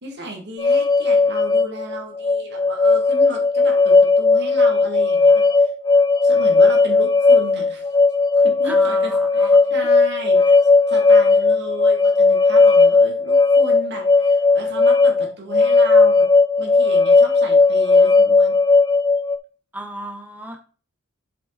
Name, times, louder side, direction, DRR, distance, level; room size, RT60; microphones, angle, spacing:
voice 1, 0.0-5.7 6.2-7.9 8.4-10.4 10.9-16.2 16.6-18.6, right 1 dB, 55° right, 1 dB, 2.4 m, -34 dB
sound 1, 0.6-19.4, left 3 dB, 20° left, 0.3 m, -16 dB
voice 2, 8.6-9.7 19.7-20.6, right 1 dB, 10° right, 4 dB, 0.9 m, -34 dB
7.4 x 5.2 x 4.1 m, 0.40 s
head